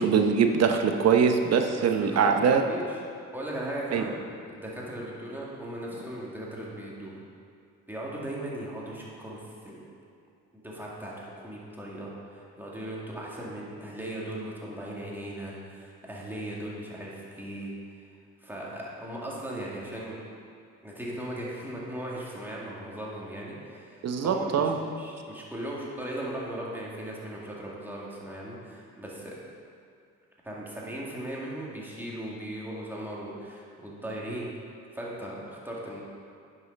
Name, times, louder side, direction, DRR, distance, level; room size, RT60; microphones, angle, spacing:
voice 1, 0.0-2.6 3.9-4.0 24.0-24.8, right 6 dB, 55° right, 5 dB, 0.9 m, -23 dB
voice 2, 1.8-3.0 3.3-4.1 4.5-7.2 7.9-9.9 10.5-17.7 18.4-20.2 20.8-24.7 25.0-29.3 30.4-34.5 34.9-36.0, right 1 dB, 5° right, -5 dB, 2.1 m, -38 dB
9.9 x 5.5 x 5.3 m, 2.3 s
cardioid pair, 90°, 30 cm